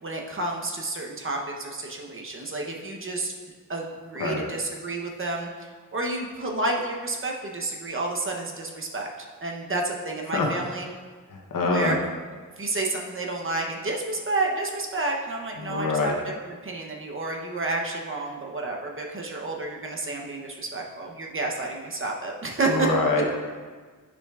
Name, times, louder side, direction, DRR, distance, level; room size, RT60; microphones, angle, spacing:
voice 1, 0.0-3.3 3.7-10.9 11.6-12.0 12.6-22.9, right 2 dB, 40° right, 0 dB, 0.8 m, -30 dB
voice 2, 11.3-12.0 15.6-16.1 22.7-23.2, left 3 dB, 85° left, 0 dB, 0.9 m, -25 dB
9.9 x 5.0 x 2.4 m, 1.5 s
wide cardioid pair, 125°, 33 cm